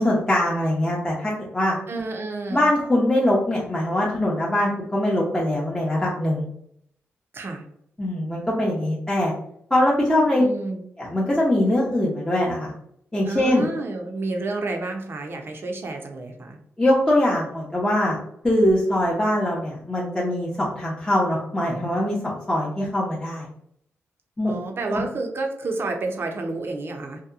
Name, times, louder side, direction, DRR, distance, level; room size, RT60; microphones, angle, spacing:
voice 1, 0.0-1.8 2.5-6.4 8.0-9.3 9.7-10.4 11.0-12.7 13.1-13.6 16.8-18.2 18.4-23.5 24.4-24.5 24.9-25.0, left 1 dB, 10° left, -6 dB, 0.6 m, -22 dB
voice 2, 1.9-2.7 7.3-7.6 10.4-10.8 13.3-16.6 24.5-27.2, right 3 dB, 50° right, 3 dB, 0.6 m, -30 dB
2.7 x 2.1 x 2.4 m, 0.70 s
cardioid pair, 80°, 5 cm